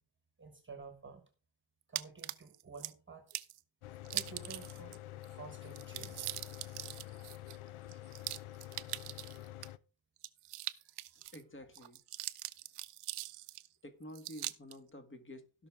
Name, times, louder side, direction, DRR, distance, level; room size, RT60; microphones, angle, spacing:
voice 1, 0.4-1.3 1.9-3.4 4.1-6.3 10.8-11.0 11.2-11.3, right 4 dB, 25° right, 1.3 m, -52 dB
sound 1, 2.0-2.9 3.3-3.6 4.1-5.0 5.2-5.3 5.6-9.7 10.2-11.4 11.7-13.7 14.2-14.8, right 15 dB, 90° right, 0.8 m, -42 dB
Mechanical fan, 3.8-9.8, left 15 dB, 75° left, 0.7 m, -48 dB
voice 2, 11.1-12.0 13.8-15.7, left 1 dB, 25° left, 1.6 m, -50 dB
16.5 x 6.1 x 3.6 m
cardioid pair, 135°, 50 cm